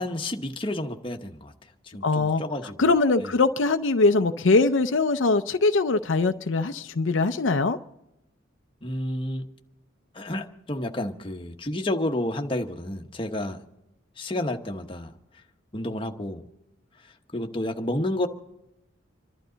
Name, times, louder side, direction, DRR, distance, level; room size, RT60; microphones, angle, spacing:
voice 1, 0.0-1.5 1.9-2.7 3.2-3.3 8.8-9.5 10.1-13.6 14.2-15.1 15.7-16.4 17.3-18.3, left 1 dB, 25° left, 1.0 m, -30 dB
voice 2, 2.0-2.4 2.8-7.8, left 3 dB, 70° left, 0.6 m, -22 dB
27.0 x 12.0 x 3.9 m
head